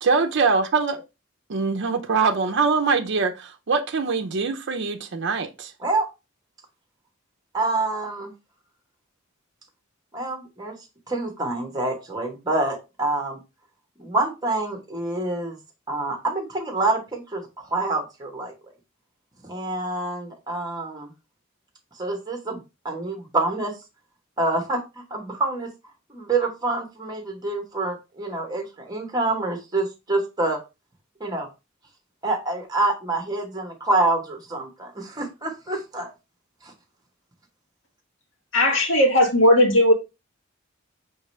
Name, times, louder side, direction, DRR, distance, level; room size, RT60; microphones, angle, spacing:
voice 1, 0.0-1.0 1.5-5.7, right 4 dB, 60° right, 0.6 m, -23 dB
voice 2, 7.5-8.3 10.1-10.8 11.1-13.4 14.0-15.6 15.9-18.5 19.4-21.1 21.9-23.7 24.4-30.6 31.2-31.5 32.2-36.1 36.6-36.7, right 2 dB, 20° right, 1.1 m, -27 dB
voice 3, 38.5-39.9, left 1 dB, 65° left, 1.4 m, -17 dB
4.7 x 3.1 x 3.2 m
head